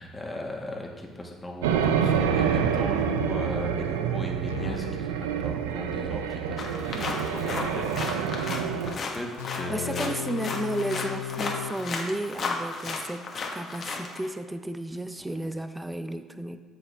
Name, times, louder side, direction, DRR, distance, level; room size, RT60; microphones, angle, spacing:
voice 1, 0.0-6.7 7.1-9.3 9.6-10.1 15.2-15.5, left 1 dB, 15° left, 0 dB, 2.0 m, -38 dB
sound 1, 1.6-9.0, right 7 dB, 85° right, 0.5 m, -27 dB
sound 2, 4.5-5.0 9.4-12.0, left 10 dB, 85° left, 0.4 m, -36 dB
sound 3, 6.6-14.3, left 4 dB, 50° left, 1.5 m, -34 dB
voice 2, 9.7-16.6, right 1 dB, 10° right, 10 dB, 0.7 m, -33 dB
8.1 x 8.0 x 3.6 m, 1.4 s
hypercardioid pair, 55°, 0 cm